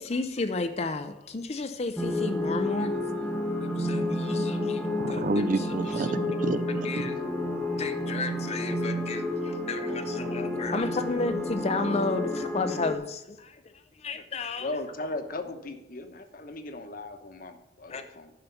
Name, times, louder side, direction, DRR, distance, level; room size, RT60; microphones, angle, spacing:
voice 1, 0.0-2.9 3.8-5.2 6.8-7.1 7.8-13.6 14.0-14.7 17.9-18.1, left 3 dB, 35° left, 8 dB, 0.5 m, -32 dB
sound 1, 2.0-12.9, left 1 dB, 5° left, 0.9 m, -30 dB
voice 2, 5.0-7.1, right 2 dB, 45° right, 14 dB, 0.5 m, -30 dB
voice 3, 14.6-18.3, left 2 dB, 50° left, 8 dB, 1.1 m, -37 dB
10.5 x 5.6 x 6.9 m, 0.90 s
head